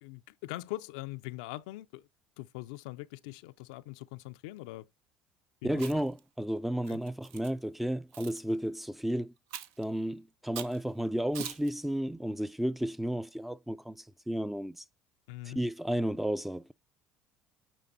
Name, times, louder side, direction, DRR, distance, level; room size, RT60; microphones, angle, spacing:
voice 1, 0.0-2.1 2.4-4.9 5.6-6.0 6.9-7.0 15.3-15.6, left 18 dB, 85° left, 0.4 m, -42 dB
voice 2, 5.6-9.3 9.8-14.8 15.5-16.7, right 1 dB, 5° right, 0.4 m, -33 dB
Chewing mastication, 5.7-6.2 6.9-7.5 8.1-8.4 9.5-9.8 10.6-10.8 11.3-11.7, right 10 dB, 75° right, 0.7 m, -42 dB
9.3 x 3.4 x 3.9 m
supercardioid pair, 90°, 4 cm